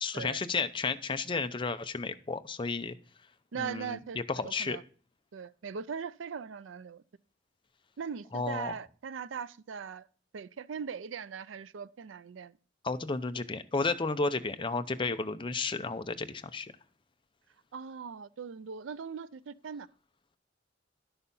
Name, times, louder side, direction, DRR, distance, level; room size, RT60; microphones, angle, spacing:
voice 1, 0.0-3.0 3.6-4.8 8.3-8.7 12.8-16.7, left 3 dB, 25° left, 0.7 m, -32 dB
voice 2, 3.5-4.8 5.3-7.0 8.0-10.1 10.3-12.6 17.7-19.9, right 6 dB, 85° right, 0.4 m, -40 dB
11.0 x 6.7 x 5.4 m
head